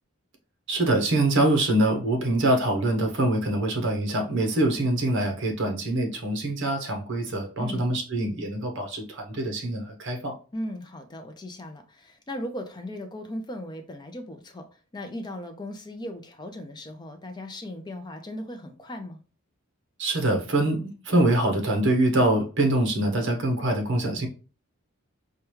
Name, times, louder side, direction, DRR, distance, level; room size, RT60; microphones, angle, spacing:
voice 1, 0.7-10.3 20.0-24.3, right 1 dB, 55° right, 0.8 m, -24 dB
voice 2, 10.5-19.2, left 1 dB, 20° left, 0.5 m, -37 dB
4.7 x 2.2 x 3.0 m
head